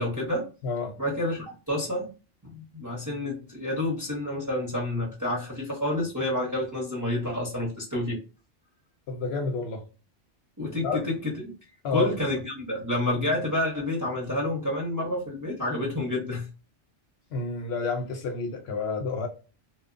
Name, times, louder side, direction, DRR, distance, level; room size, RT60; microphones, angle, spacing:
voice 1, 0.0-0.5 1.0-2.1 2.4-8.2 10.6-11.5 11.9-16.5, left 1 dB, 20° right, 0.5 m, -29 dB
voice 2, 0.6-0.9 9.1-9.8 10.8-11.0 11.8-12.2 17.3-19.3, left 4 dB, 65° left, 0.7 m, -29 dB
2.8 x 2.1 x 2.4 m
omnidirectional pair, 1.2 m